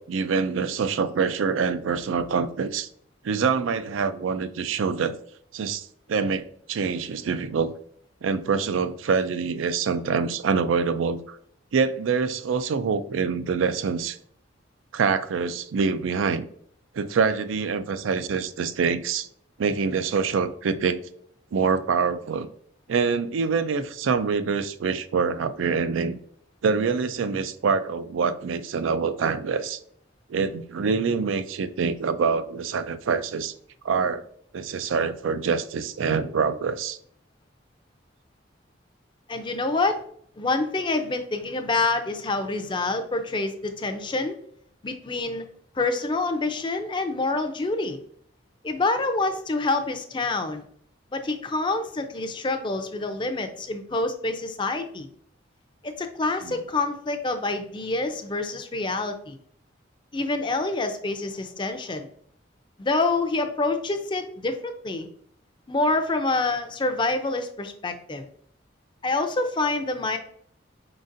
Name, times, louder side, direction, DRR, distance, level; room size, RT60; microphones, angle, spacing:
voice 1, 0.0-2.9 3.2-5.1 5.5-7.7 8.2-11.4 11.7-14.2 14.9-16.5 16.9-19.3 19.6-21.0 21.5-22.5 22.9-26.2 26.6-29.8 30.3-33.5 33.8-34.2 34.5-37.0 56.4-56.6, right 5 dB, 90° right, 0.4 m, -25 dB
voice 2, 39.3-40.0 40.4-44.3 44.8-45.4 45.8-48.0 48.6-50.6 51.1-55.1 55.8-59.4 60.1-62.1 62.8-65.1 65.7-68.3 69.0-70.2, left 3 dB, 25° left, 0.4 m, -27 dB
4.9 x 3.9 x 2.5 m
head